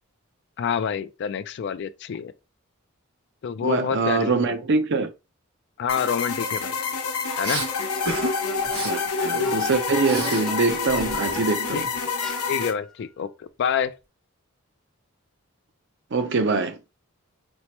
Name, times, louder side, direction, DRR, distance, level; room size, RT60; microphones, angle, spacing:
voice 1, 0.6-2.3 3.4-4.6 5.8-6.8 7.4-7.6 11.7-11.8 12.5-14.0, left 7 dB, 50° left, 0.3 m, -27 dB
voice 2, 3.6-5.1 8.8-11.9 16.1-16.8, right 4 dB, 55° right, 0.5 m, -24 dB
sound 1, 5.9-12.7, left 5 dB, 90° left, 0.8 m, -28 dB
sound 2, 7.3-11.7 12.2-12.9, left 1 dB, 5° left, 0.6 m, -41 dB
Respiratory sounds, 7.4-7.7 8.1-8.3 8.6-8.9 9.3-10.5 10.7-12.2, right 1 dB, 70° right, 1.7 m, -32 dB
4.4 x 2.0 x 2.9 m
head